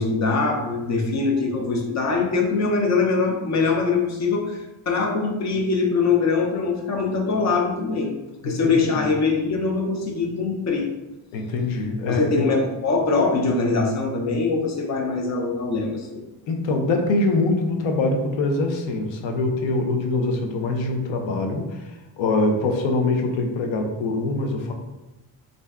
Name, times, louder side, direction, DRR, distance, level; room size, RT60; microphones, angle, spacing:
voice 1, 0.0-8.1 8.4-10.9 12.1-16.2, left 4 dB, 35° left, 1 dB, 0.6 m, -23 dB
voice 2, 8.4-9.0 11.3-12.5 16.5-24.7, left 2 dB, 75° left, 3 dB, 0.7 m, -24 dB
2.5 x 2.2 x 3.4 m, 1.0 s
cardioid pair, 125°, 46 cm